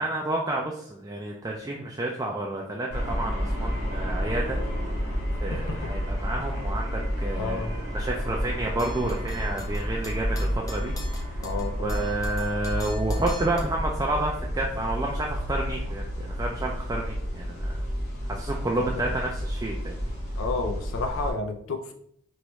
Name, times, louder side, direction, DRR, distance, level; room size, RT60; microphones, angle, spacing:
voice 1, 0.0-4.6 5.4-11.3 11.8-17.8 18.2-19.9, right 2 dB, 15° right, -1 dB, 0.3 m, -30 dB
sound 1, 2.9-21.3, equal, 90° left, 1.5 m, -30 dB
voice 2, 5.5-5.9 7.4-7.7 11.4-12.0 18.8-19.1 20.4-21.9, left 3 dB, 70° left, 6 dB, 0.4 m, -31 dB
sound 2, 8.8-13.6, left 1 dB, 15° left, 0.6 m, -44 dB
4.7 x 3.0 x 3.0 m, 0.71 s
head